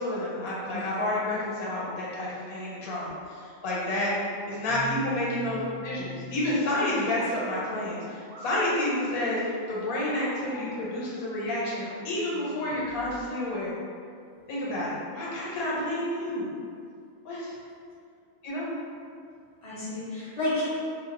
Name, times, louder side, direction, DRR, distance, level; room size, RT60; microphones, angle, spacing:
voice 1, 0.0-4.1 4.5-13.7 14.5-16.5 17.2-17.5 18.4-18.7, left 1 dB, 90° left, -6 dB, 1.2 m, -30 dB
voice 2, 0.6-1.1 6.8-7.1 19.6-20.7, left 1 dB, 35° left, -9 dB, 0.9 m, -32 dB
sound 1, 4.7-13.3, right 3 dB, 70° right, 0.9 m, -44 dB
2.6 x 2.0 x 3.6 m, 2.3 s
omnidirectional pair, 1.5 m